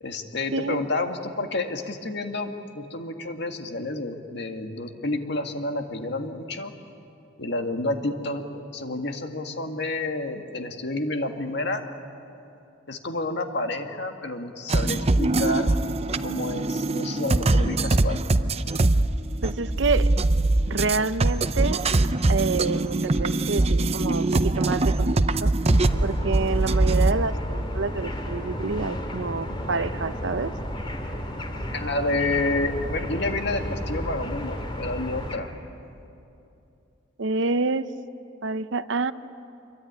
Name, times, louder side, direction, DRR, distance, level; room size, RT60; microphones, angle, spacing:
voice 1, 0.0-6.7 7.4-11.8 12.9-15.8 16.2-18.2 31.7-35.5, left 2 dB, 60° left, 5 dB, 1.9 m, -29 dB
sound 1, 14.7-27.1, right 2 dB, 35° right, 0.6 m, -22 dB
voice 2, 19.4-20.1 20.7-21.8 22.3-25.5 26.0-30.5 37.2-37.9 38.4-39.1, right 4 dB, 70° right, 13 dB, 0.8 m, -27 dB
sound 2, 25.7-35.4, equal, 25° left, 2.4 m, -33 dB
26.0 x 23.0 x 9.5 m, 2.8 s
head